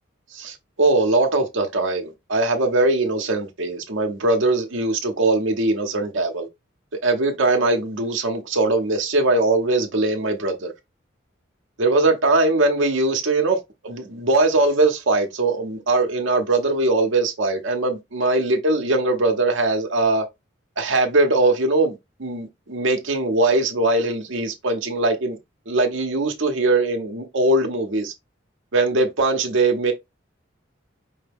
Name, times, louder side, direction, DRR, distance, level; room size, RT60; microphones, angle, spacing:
voice 1, 0.3-6.5 7.0-10.7 11.8-13.6 13.8-20.3 20.8-25.4 25.7-28.1 28.7-29.9, right 2 dB, 75° right, 0.9 m, -21 dB
5.4 x 2.2 x 3.4 m
head